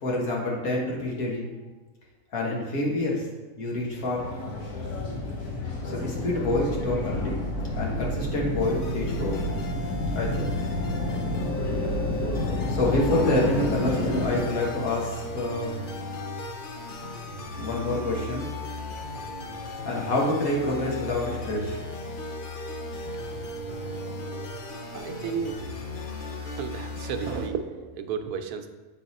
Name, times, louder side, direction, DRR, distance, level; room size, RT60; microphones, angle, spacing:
voice 1, 0.0-1.5 2.3-3.3 3.6-4.3 5.8-7.4 7.7-9.4 10.1-10.5 12.7-15.8 17.6-18.5 19.8-21.8, left 1 dB, 70° left, -3 dB, 1.8 m, -27 dB
sound 1, 3.8-14.4, left 1 dB, 90° left, 1.7 m, -30 dB
sound 2, 8.6-27.5, left 2 dB, 50° left, 0.7 m, -36 dB
voice 2, 24.9-25.6 26.1-28.7, right 7 dB, 90° right, 7 dB, 1.1 m, -33 dB
8.1 x 4.1 x 4.1 m, 1.2 s
omnidirectional pair, 1.6 m